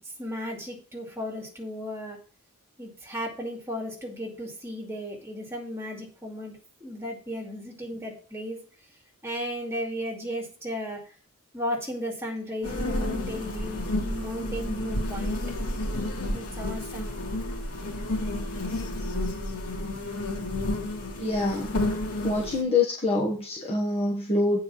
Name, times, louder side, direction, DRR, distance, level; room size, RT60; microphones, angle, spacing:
voice 1, 0.2-2.2 2.8-8.6 9.2-11.0 11.5-15.4 16.3-17.2, equal, 10° right, 1 dB, 2.4 m, -35 dB
sound 1, 12.6-22.6, left 1 dB, 85° left, 2.3 m, -31 dB
voice 2, 21.2-21.7 22.2-24.6, left 3 dB, 25° left, -1 dB, 1.5 m, -25 dB
8.6 x 4.5 x 7.2 m, 0.38 s
head